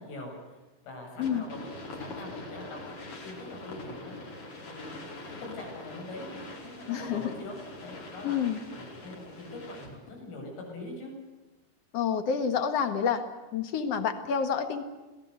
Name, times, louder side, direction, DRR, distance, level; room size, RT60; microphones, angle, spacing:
voice 1, 0.0-3.0 3.2-4.2 4.6-11.1, left 2 dB, 80° left, 0 dB, 10.5 m, -43 dB
sound 1, 1.2-10.1, left 2 dB, 45° left, 6.0 m, -43 dB
voice 2, 6.9-7.3 8.2-8.6 11.9-13.2 13.5-14.9, left 7 dB, 65° left, 9 dB, 1.6 m, -28 dB
26.5 x 19.0 x 8.2 m, 1.2 s
omnidirectional pair, 5.7 m